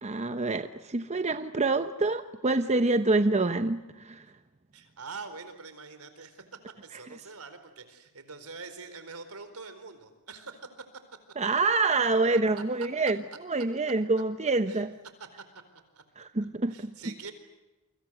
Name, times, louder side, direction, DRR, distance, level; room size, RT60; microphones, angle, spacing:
voice 1, 0.0-4.2 11.4-14.9 16.2-17.0, right 3 dB, 30° right, 10 dB, 0.8 m, -27 dB
voice 2, 4.7-6.4 6.8-10.6 12.5-12.6 14.7-14.8 15.9-16.0 16.7-17.3, right 4 dB, 75° right, 10 dB, 4.4 m, -44 dB
29.0 x 25.0 x 8.0 m, 1.0 s
head